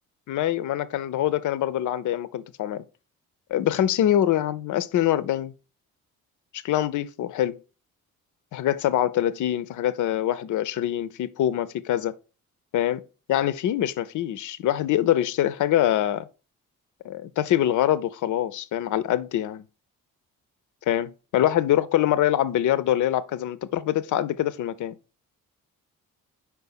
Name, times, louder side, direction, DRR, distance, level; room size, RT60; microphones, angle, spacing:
voice 1, 0.3-2.8 3.5-5.5 6.5-7.6 8.5-12.1 12.7-13.0 13.3-16.3 17.0-19.6 20.9-25.0, left 12 dB, 45° left, 0.6 m, -24 dB
5.7 x 4.6 x 4.5 m
figure-of-eight pair, 45°, 43 cm